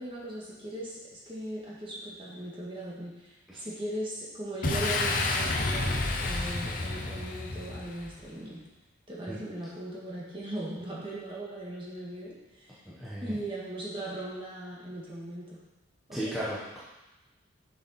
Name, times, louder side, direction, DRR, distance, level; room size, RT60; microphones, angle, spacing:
voice 1, 0.0-8.6 9.1-12.8 13.2-15.6 16.1-16.3, right 1 dB, 25° right, -5 dB, 1.8 m, -39 dB
Boom, 4.6-8.2, left 2 dB, 45° left, 0.8 m, -30 dB
voice 2, 13.0-13.4 16.1-16.8, equal, ahead, -10 dB, 1.2 m, -35 dB
7.2 x 6.3 x 4.3 m, 1.0 s
head